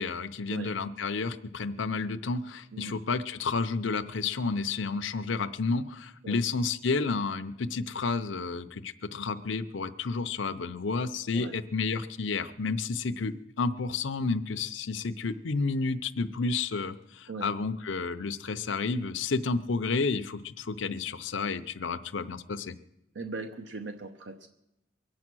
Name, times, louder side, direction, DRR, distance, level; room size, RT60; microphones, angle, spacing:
voice 1, 0.0-22.8, left 4 dB, 80° left, 8 dB, 0.7 m, -31 dB
voice 2, 23.1-24.5, right 3 dB, 70° right, 6 dB, 0.9 m, -39 dB
23.0 x 8.5 x 6.2 m, 0.87 s
head